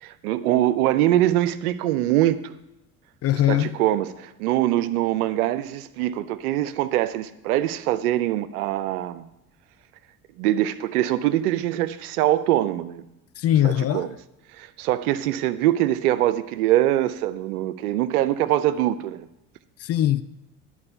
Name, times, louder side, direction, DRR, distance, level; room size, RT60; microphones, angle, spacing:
voice 1, 0.0-2.5 3.5-9.3 10.4-13.0 13.6-14.1 14.6-19.3, right 13 dB, 80° right, 0.6 m, -23 dB
voice 2, 3.2-3.8 13.4-14.1 19.8-20.2, left 12 dB, 35° left, 0.4 m, -21 dB
11.5 x 4.7 x 5.6 m
hypercardioid pair, 65°, 44 cm